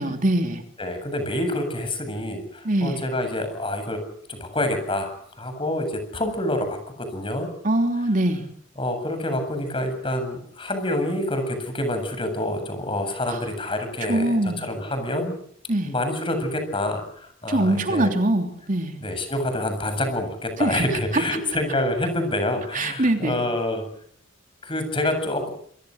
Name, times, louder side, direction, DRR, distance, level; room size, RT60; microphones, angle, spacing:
voice 1, 0.0-0.6 2.6-3.0 7.6-8.4 13.3-13.4 14.1-14.7 15.7-15.9 17.5-18.9 20.6-20.9 22.7-23.4, right 1 dB, 45° right, 5 dB, 3.2 m, -23 dB
voice 2, 0.8-4.0 4.3-7.5 8.8-15.3 15.8-18.1 19.0-23.8 24.6-25.5, left 1 dB, 25° left, 7 dB, 7.7 m, -27 dB
28.5 x 25.0 x 6.6 m, 0.65 s
head